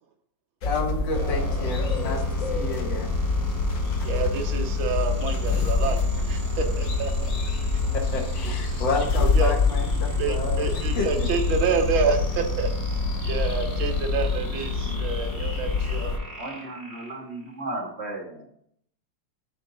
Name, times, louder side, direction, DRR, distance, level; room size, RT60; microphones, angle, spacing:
sound 1, 0.6-16.2, left 4 dB, 75° left, 0.7 m, -26 dB
voice 1, 0.6-3.1 7.9-10.7 11.0-11.3, left 4 dB, 60° left, 1 dB, 1.9 m, -30 dB
sound 2, 1.1-17.6, right 4 dB, 10° left, 2.4 m, -35 dB
voice 2, 4.0-6.0 6.3-7.6 8.7-8.8 9.2-9.5 10.2-12.7 13.2-16.1, right 5 dB, 75° right, 5 dB, 1.6 m, -28 dB
voice 3, 16.4-18.5, right 2 dB, 35° right, -3 dB, 1.6 m, -35 dB
10.5 x 3.6 x 3.9 m, 0.67 s
omnidirectional pair, 2.3 m